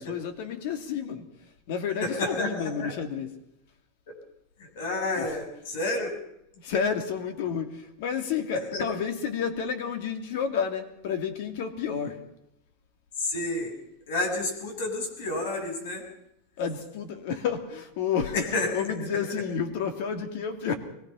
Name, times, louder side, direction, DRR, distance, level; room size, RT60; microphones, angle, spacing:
voice 1, 0.0-1.3 1.7-3.3 5.1-5.2 6.6-12.2 16.6-18.4 18.7-20.8, left 7 dB, 60° left, 7 dB, 2.9 m, -30 dB
voice 2, 2.0-2.9 4.1-4.2 4.6-6.2 8.5-8.9 13.2-13.7 14.1-16.0 18.3-19.3, left 2 dB, 80° left, 4 dB, 7.1 m, -30 dB
23.5 x 19.5 x 5.8 m, 0.82 s
supercardioid pair, 160°, 0 cm